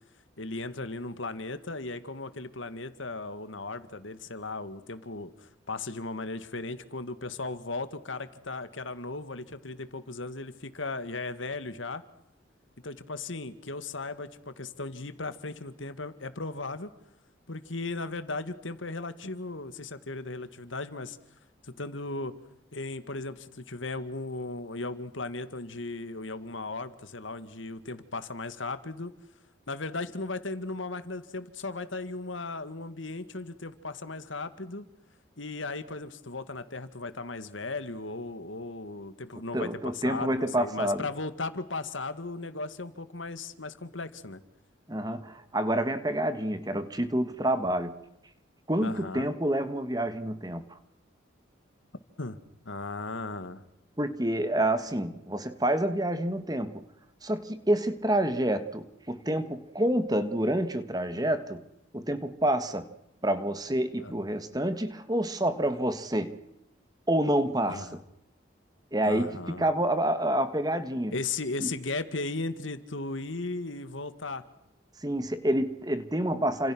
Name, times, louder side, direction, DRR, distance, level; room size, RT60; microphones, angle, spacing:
voice 1, 0.4-12.0 12.8-16.9 17.5-21.2 21.6-22.3 22.7-29.1 29.7-34.9 35.4-44.4 48.8-49.3 52.2-52.4 52.7-53.6 64.0-64.1 67.7-68.0 69.0-69.6 71.1-74.4, left 3 dB, 80° left, 2.0 m, -36 dB
voice 2, 39.5-41.0 44.9-48.0 48.7-50.8 54.0-56.8 57.2-61.7 61.9-62.9 63.2-66.4 67.1-68.0 68.9-71.1 71.6-71.7 75.0-76.7, right 1 dB, 20° right, 1.7 m, -28 dB
30.0 x 27.0 x 6.3 m
head